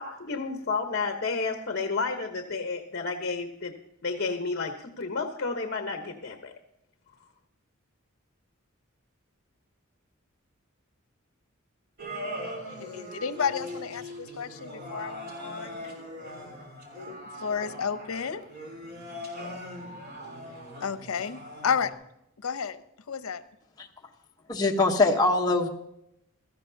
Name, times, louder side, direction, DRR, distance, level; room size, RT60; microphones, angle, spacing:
voice 1, 0.0-3.7 4.0-6.5, left 4 dB, 50° left, 4 dB, 1.0 m, -31 dB
sound 1, 12.0-21.9, left 1 dB, 50° right, 3.3 m, -40 dB
voice 2, 12.8-16.0 17.4-18.5 20.8-21.9 22.4-22.8 23.1-23.4, left 6 dB, 90° left, 12 dB, 0.7 m, -31 dB
voice 3, 24.5-25.7, left 2 dB, 20° left, 0 dB, 1.0 m, -23 dB
17.0 x 13.5 x 2.7 m, 0.80 s
head